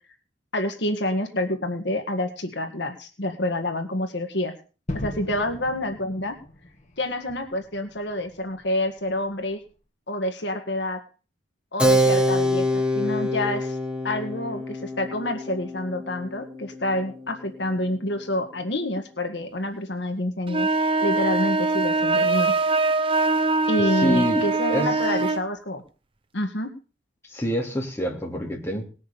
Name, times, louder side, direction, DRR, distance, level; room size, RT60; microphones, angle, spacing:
voice 1, 0.5-4.5 4.9-6.3 7.0-9.6 10.1-11.0 11.7-13.8 14.0-20.7 21.0-22.5 23.7-25.8 26.3-26.7, left 1 dB, 65° left, 5 dB, 1.8 m, -28 dB
Gunshot gunfire / Fireworks / Boom, 4.9-9.7, left 1 dB, 40° left, 2.0 m, -39 dB
Keyboard (musical), 11.8-17.9, equal, 5° right, 2.1 m, -26 dB
sound 1, 20.5-25.4, right 3 dB, 30° right, 0.7 m, -22 dB
voice 2, 24.0-24.4 24.7-25.0 27.2-28.8, equal, 15° left, -1 dB, 3.1 m, -26 dB
19.5 x 6.5 x 7.0 m, 0.36 s
head